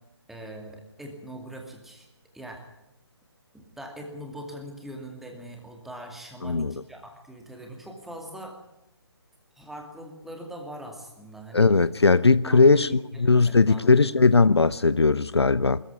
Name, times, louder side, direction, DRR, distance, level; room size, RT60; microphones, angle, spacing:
voice 1, 0.3-2.1 2.3-2.6 3.5-8.6 9.6-11.7 12.4-14.0, right 1 dB, ahead, 2.4 m, -41 dB
voice 2, 6.4-6.7 11.5-12.9 13.2-15.8, left 4 dB, 70° left, 0.7 m, -19 dB
20.5 x 14.5 x 9.7 m
figure-of-eight pair, 140°, 14 cm